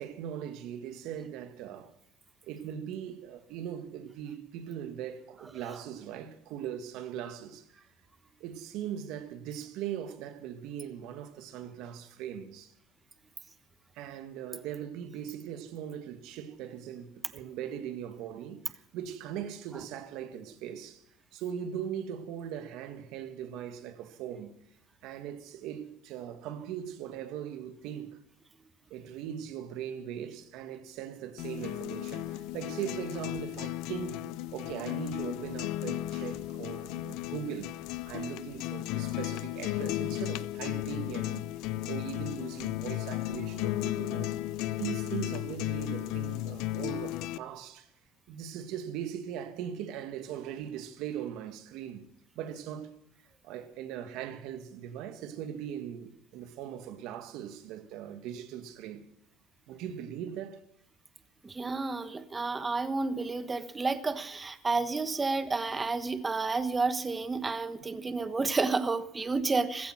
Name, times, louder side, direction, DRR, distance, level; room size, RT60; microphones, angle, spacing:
voice 1, 0.0-1.9 2.5-7.7 8.4-12.7 13.9-21.0 21.3-24.6 25.0-28.2 28.9-34.3 34.5-37.7 38.0-41.5 41.9-44.3 44.7-47.9 48.3-52.1 52.4-52.9 53.4-59.1 59.7-60.6, right 9 dB, 70° right, 1.9 m, -40 dB
sound 1, 31.4-47.4, left 15 dB, 75° left, 0.6 m, -35 dB
voice 2, 61.4-69.9, right 3 dB, 20° right, 1.2 m, -30 dB
15.5 x 14.5 x 6.3 m
supercardioid pair, 100°, 0 cm